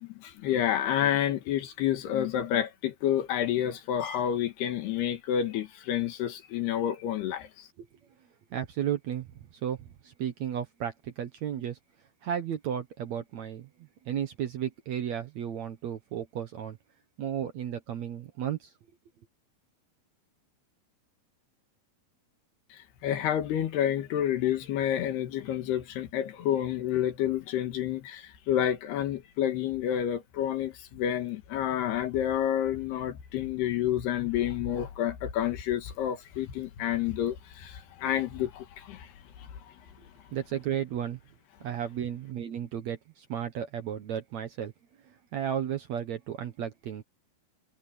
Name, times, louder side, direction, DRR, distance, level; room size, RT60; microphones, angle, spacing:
voice 1, 0.0-7.7 22.7-39.1 39.4-39.5, left 10 dB, 85° left, 3.8 m, -29 dB
voice 2, 8.5-9.8 10.0-11.8 12.2-13.7 14.1-16.8 17.2-18.7 40.3-41.2 41.6-44.7 45.1-47.0, right 9 dB, 65° right, 1.8 m, -34 dB
omnidirectional pair, 4.5 m